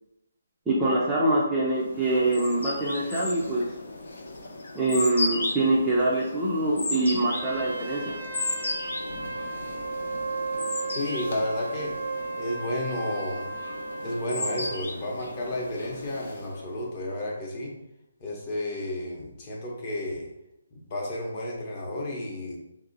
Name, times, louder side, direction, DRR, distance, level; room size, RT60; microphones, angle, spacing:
voice 1, 0.7-3.8 4.7-8.2, right 2 dB, 5° right, -8 dB, 0.5 m, -24 dB
sound 1, 1.8-16.7, left 2 dB, 65° left, 0.8 m, -36 dB
Trumpet, 7.2-14.9, right 3 dB, 80° right, 0.7 m, -35 dB
voice 2, 10.9-11.9 12.4-13.5 14.0-17.7 18.2-20.3 20.7-22.6, left 1 dB, 25° left, -2 dB, 0.8 m, -32 dB
3.2 x 2.7 x 3.9 m, 0.87 s
hypercardioid pair, 170°, 0 cm